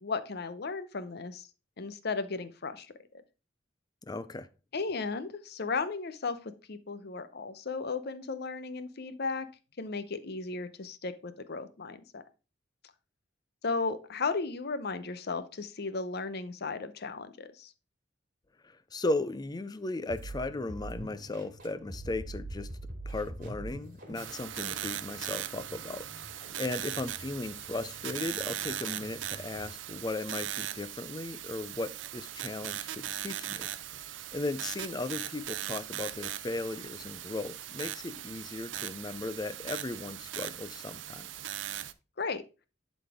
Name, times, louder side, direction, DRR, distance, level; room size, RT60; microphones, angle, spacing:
voice 1, 0.0-1.5 1.8-3.2 4.7-9.5 9.8-12.2 13.6-17.7 42.2-42.4, left 4 dB, 60° left, 0.7 m, -35 dB
voice 2, 4.0-4.5 18.6-22.7 23.1-33.7 34.3-41.3, left 2 dB, 20° left, 0.4 m, -36 dB
sound 1, 20.1-29.8, right 1 dB, 45° right, 2.4 m, -45 dB
sound 2, 24.1-41.9, right 12 dB, 75° right, 0.5 m, -39 dB
11.0 x 4.1 x 3.5 m
head